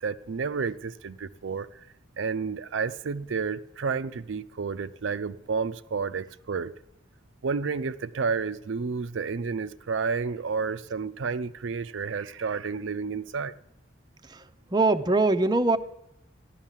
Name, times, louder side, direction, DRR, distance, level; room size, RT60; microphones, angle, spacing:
voice 1, 0.0-1.9 2.2-6.7 7.4-13.6, right 5 dB, 70° right, 0.5 m, -31 dB
voice 2, 14.7-15.8, right 2 dB, 20° right, 0.5 m, -22 dB
14.5 x 11.5 x 7.4 m
head